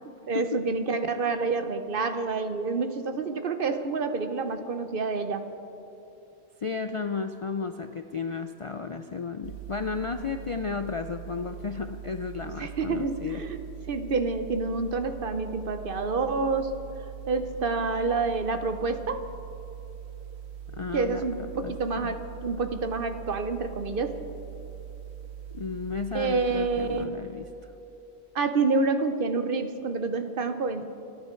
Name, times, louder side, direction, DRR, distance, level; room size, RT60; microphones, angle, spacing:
voice 1, 0.0-5.5 12.4-13.6 13.9-16.7 17.3-19.3 20.9-24.2 26.1-27.1 28.3-30.8, right 4 dB, 60° right, 9 dB, 1.0 m, -28 dB
voice 2, 6.6-13.4 20.7-21.2 21.6-21.7 22.0-22.1 25.5-27.5, left 5 dB, 50° left, 8 dB, 0.4 m, -33 dB
sound 1, 9.4-27.1, right 10 dB, 85° right, 0.9 m, -42 dB
28.0 x 9.5 x 4.5 m, 2.8 s
omnidirectional pair, 1.1 m